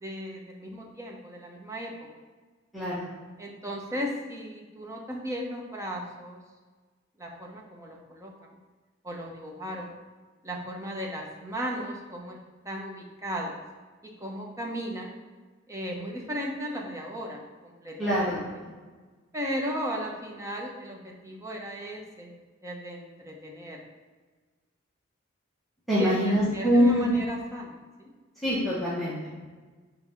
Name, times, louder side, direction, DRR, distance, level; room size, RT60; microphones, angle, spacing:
voice 1, 0.0-1.9 3.4-6.4 7.2-8.6 9.0-9.9 10.4-12.4 12.6-13.6 14.0-15.1 15.7-18.4 19.3-22.3 22.6-23.8 25.9-28.1, equal, 15° right, -1 dB, 1.0 m, -36 dB
voice 2, 2.7-3.0 18.0-18.3 18.6-18.7 25.9-27.1 28.4-29.4, equal, ahead, -11 dB, 1.4 m, -24 dB
6.0 x 3.4 x 5.8 m, 1.4 s
head